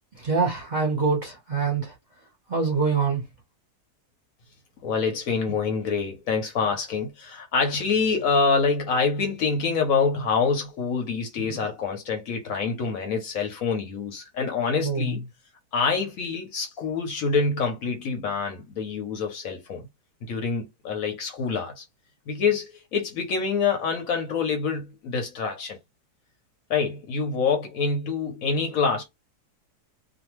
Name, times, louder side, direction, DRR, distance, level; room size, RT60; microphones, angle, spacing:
voice 1, 0.2-1.9 2.5-3.2 14.8-15.2, right 4 dB, 35° right, 0.9 m, -24 dB
voice 2, 4.8-15.2 15.7-19.8 20.2-21.8 22.3-25.8 26.7-29.0, left 5 dB, 65° left, 1.0 m, -26 dB
2.6 x 2.3 x 3.0 m
omnidirectional pair, 1.7 m